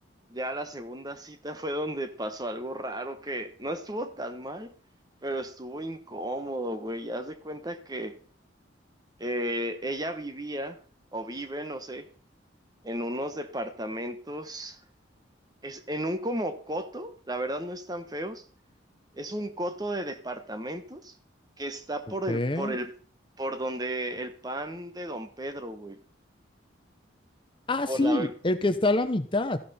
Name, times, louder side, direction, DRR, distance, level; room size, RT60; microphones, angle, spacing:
voice 1, 0.3-4.7 5.2-8.2 9.2-10.8 11.1-12.1 12.8-14.8 15.6-18.4 19.2-21.2 21.6-22.9 23.4-26.0 27.9-28.3, right 1 dB, 20° right, 1.2 m, -34 dB
voice 2, 22.3-22.8 27.7-29.6, left 2 dB, 25° left, 0.8 m, -26 dB
14.5 x 12.0 x 4.3 m
head